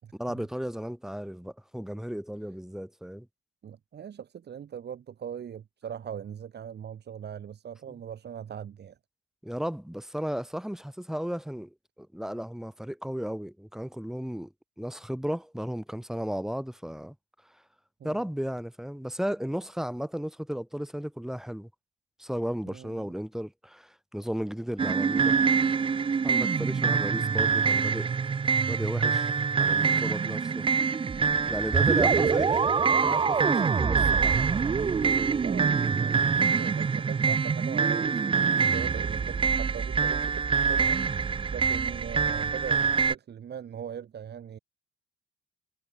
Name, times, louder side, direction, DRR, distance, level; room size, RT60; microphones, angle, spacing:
voice 1, 0.1-3.3 9.4-14.5 14.8-17.2 17.4-17.6 18.0-21.7 22.2-25.4 26.2-28.1 28.7-30.6 31.5-32.6 33.0-34.4, equal, ahead, 4.4 m, -34 dB
voice 2, 3.6-9.0 18.0-18.2 22.7-23.1 31.7-32.5 35.4-41.0 41.5-44.6, right 8 dB, 55° right, 4.9 m, -40 dB
sound 1, 24.8-43.1, right 5 dB, 25° right, 0.6 m, -25 dB
cardioid pair, 90°, 20 cm